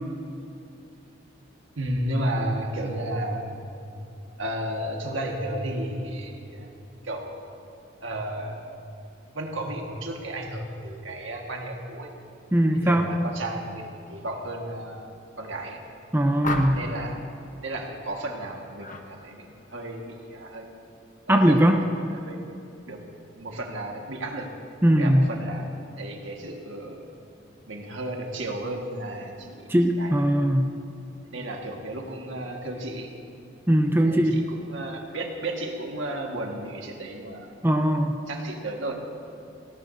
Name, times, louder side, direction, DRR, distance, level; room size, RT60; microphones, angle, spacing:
voice 1, 1.8-3.5 4.4-6.7 7.0-7.4 8.0-8.6 9.3-12.1 12.8-15.8 16.7-17.2 17.6-20.7 21.3-22.4 22.9-23.0 23.3-24.5 25.0-27.2 27.7-30.4 31.3-33.1 34.0-37.5 38.3-38.9, right 1 dB, 85° right, 1 dB, 1.6 m, -33 dB
voice 2, 12.5-13.1 16.1-16.8 21.3-21.8 24.8-25.3 29.7-30.7 33.7-34.3 37.6-38.1, equal, 10° right, 4 dB, 0.6 m, -20 dB
sound 1, 16.4-17.0 18.8-19.1 19.5-19.8, left 2 dB, 40° left, 0.9 m, -31 dB
18.0 x 17.0 x 2.7 m, 2.7 s
head